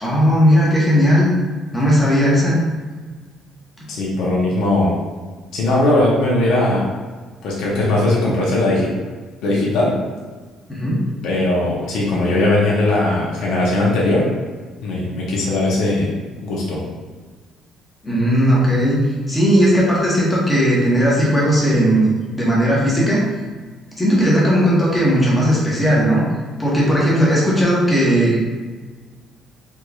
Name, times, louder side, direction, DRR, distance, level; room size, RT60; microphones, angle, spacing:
voice 1, 0.0-1.3 1.7-2.6 10.7-11.0 18.0-23.2 24.0-26.2 26.6-28.4, equal, 15° left, -5 dB, 0.9 m, -16 dB
voice 2, 3.9-4.9 5.5-6.9 7.4-8.9 9.4-10.0 11.2-14.3 14.8-16.1 16.4-16.8, left 2 dB, 75° left, -5 dB, 0.8 m, -19 dB
3.6 x 3.0 x 2.3 m, 1.4 s
cardioid pair, 145°, 0 cm